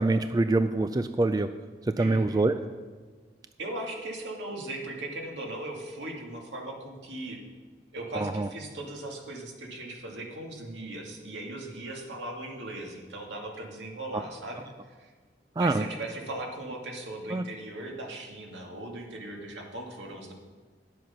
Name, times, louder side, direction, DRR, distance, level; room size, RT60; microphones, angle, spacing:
voice 1, 0.0-1.5 2.0-2.5 8.1-8.5 14.1-14.2 15.6-15.8 17.3-17.4, right 2 dB, 20° right, 10 dB, 0.3 m, -25 dB
voice 2, 2.0-2.5 3.6-7.4 7.9-14.7 15.0-15.1 15.6-20.3, right 1 dB, 85° right, 0 dB, 2.0 m, -38 dB
11.5 x 7.7 x 5.7 m, 1.5 s
head